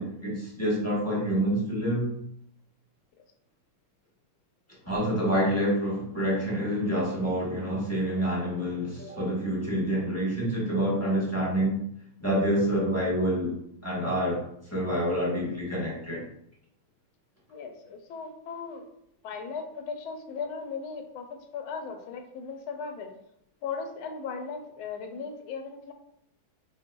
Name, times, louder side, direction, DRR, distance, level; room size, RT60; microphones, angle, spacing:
voice 1, 0.0-2.1 4.8-11.8 12.2-13.5 13.8-14.4 14.7-16.2, equal, 15° left, -7 dB, 0.5 m, -27 dB
voice 2, 17.5-18.9 19.2-21.3 21.5-23.1 23.6-25.9, left 5 dB, 90° left, 4 dB, 1.5 m, -37 dB
4.1 x 3.9 x 2.2 m, 0.74 s
omnidirectional pair, 2.2 m